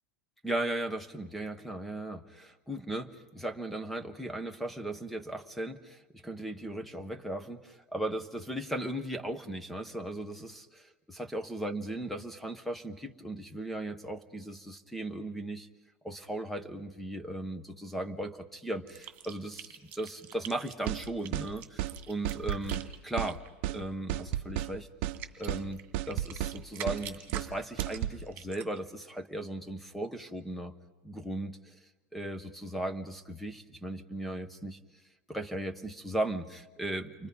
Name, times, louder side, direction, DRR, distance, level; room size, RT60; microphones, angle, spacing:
voice 1, 0.4-15.7 16.0-23.4 23.7-24.9 25.4-30.7 31.0-31.6 32.1-34.8 35.3-37.3, right 1 dB, ahead, 10 dB, 0.9 m, -37 dB
sound 1, 18.9-23.5 24.6-24.7 25.1-28.8, right 12 dB, 30° right, 2.2 m, -45 dB
sound 2, 20.9-21.0 21.3-21.5 21.8-21.9 22.2-22.9 23.2-23.3 23.6-23.8 24.1-24.7 25.0-25.2 25.5-25.6 25.9-26.6 26.9-27.0 27.3-27.5 27.8-28.2, right 14 dB, 45° right, 0.8 m, -32 dB
29.5 x 24.0 x 5.5 m, 1.2 s
supercardioid pair, 165°, 7 cm